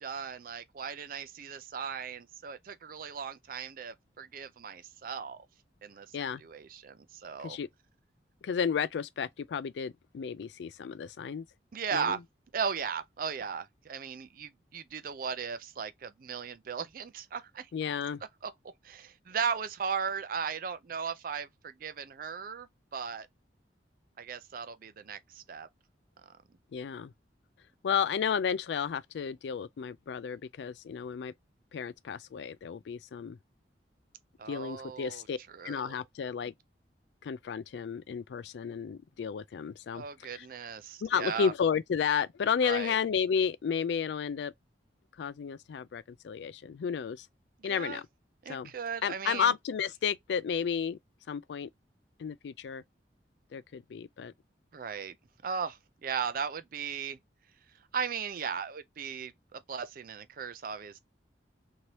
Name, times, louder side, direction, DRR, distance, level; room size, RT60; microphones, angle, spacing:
voice 1, 0.0-5.4 5.8-6.1 6.4-7.6 11.7-12.2 12.5-17.7 18.4-18.5 18.8-23.3 24.2-25.7 34.4-36.0 39.9-41.5 42.6-43.0 47.6-48.0 48.4-49.5 54.7-55.2 55.4-57.2 57.9-61.0, right 6 dB, 50° right, 0.4 m, -37 dB
voice 2, 8.4-11.5 11.9-12.2 17.7-18.2 26.7-27.1 27.8-31.3 31.7-33.4 34.5-35.4 35.6-36.5 37.2-40.5 41.0-44.5 45.2-47.3 47.6-48.1 48.5-48.7 49.0-51.0 51.3-51.7 52.2-52.8 53.5-54.3, left 7 dB, 75° left, 0.3 m, -32 dB
3.1 x 2.7 x 2.9 m
head